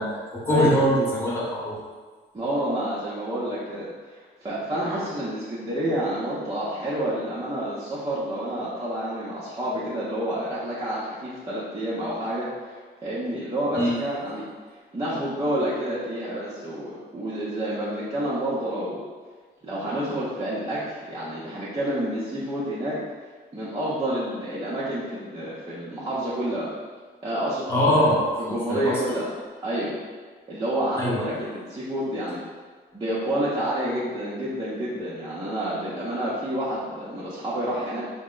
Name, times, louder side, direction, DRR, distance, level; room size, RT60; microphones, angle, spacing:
voice 1, 0.0-1.8 13.7-14.0 27.7-29.0 31.0-31.4, equal, 10° left, -7 dB, 1.2 m, -23 dB
voice 2, 2.3-12.7 13.0-14.5 14.9-19.0 19.6-23.0 23.5-26.7 27.2-28.1 28.4-29.3 29.6-29.9 30.5-32.4 32.9-38.0, right 1 dB, 20° right, -10 dB, 0.8 m, -29 dB
3.5 x 2.1 x 3.8 m, 1.5 s
cardioid pair, 90°, 20 cm